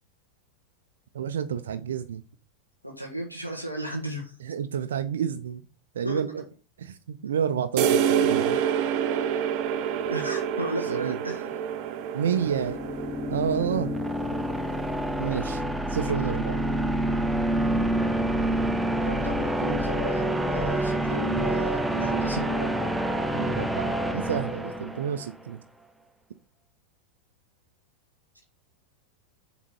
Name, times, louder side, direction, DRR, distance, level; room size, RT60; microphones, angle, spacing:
voice 1, 1.1-2.2 4.4-5.6 5.9-6.4 6.8-8.6 10.9-11.2 12.1-12.8 13.3-13.9 15.2-15.6 15.9-16.6 23.3-25.6, right 8 dB, 65° right, 0.6 m, -29 dB
voice 2, 2.8-4.4 6.0-6.2 8.5-8.6 10.1-11.4 12.2-12.7 19.0-23.0, right 1 dB, 90° left, 1.7 m, -34 dB
sound 1, 7.8-15.3, right 8 dB, 40° right, 1.0 m, -28 dB
sound 2, 12.5-25.3, right 1 dB, 5° right, 0.7 m, -27 dB
7.3 x 4.0 x 6.3 m
figure-of-eight pair, 90°, 0 cm